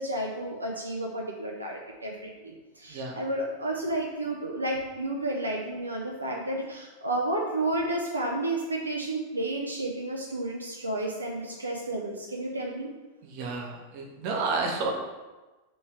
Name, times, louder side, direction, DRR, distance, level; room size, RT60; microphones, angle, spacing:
voice 1, 0.0-12.9, right 1 dB, 80° right, -1 dB, 0.4 m, -31 dB
voice 2, 13.2-14.9, right 3 dB, 45° right, 0 dB, 0.8 m, -31 dB
3.2 x 3.2 x 4.4 m, 1.2 s
figure-of-eight pair, 90°, 0 cm